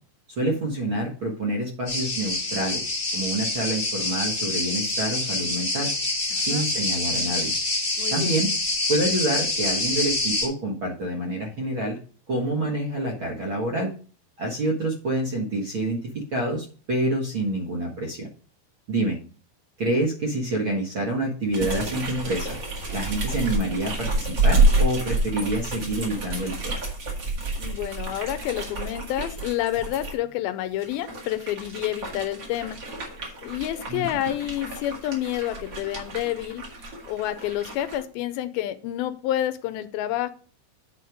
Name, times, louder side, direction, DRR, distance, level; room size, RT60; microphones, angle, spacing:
voice 1, 0.4-2.8 3.1-5.9 6.3-7.5 8.1-8.5 8.9-12.0 12.3-13.9 14.4-18.3 18.9-19.2 19.8-22.6 22.9-26.7 33.9-34.0, right 1 dB, 50° right, -2 dB, 1.5 m, -27 dB
sound 1, 1.9-10.5, left 2 dB, 20° left, 1.2 m, -26 dB
voice 2, 6.3-6.7 8.0-8.4 27.6-32.8 33.4-36.7 37.1-40.3, left 13 dB, 85° left, 12 dB, 2.5 m, -29 dB
sound 2, 21.5-30.1 30.7-38.0, right 2 dB, 35° right, 2.1 m, -28 dB
9.4 x 4.3 x 5.0 m, 0.38 s
omnidirectional pair, 4.3 m